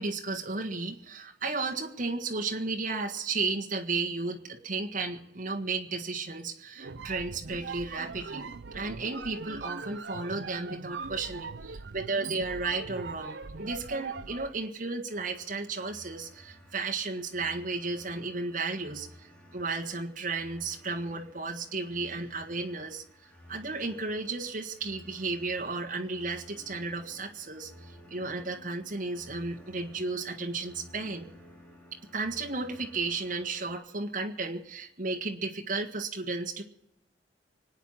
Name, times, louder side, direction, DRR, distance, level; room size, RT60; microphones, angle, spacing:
voice 1, 0.0-19.1 19.5-23.0 23.5-27.7 28.1-31.3 32.1-36.6, right 3 dB, 50° right, 2 dB, 1.6 m, -34 dB
sound 1, 6.8-14.6, right 4 dB, 85° right, 0.7 m, -41 dB
sound 2, 15.1-33.7, equal, 10° left, 4.3 m, -54 dB
25.0 x 9.3 x 5.7 m, 0.86 s
head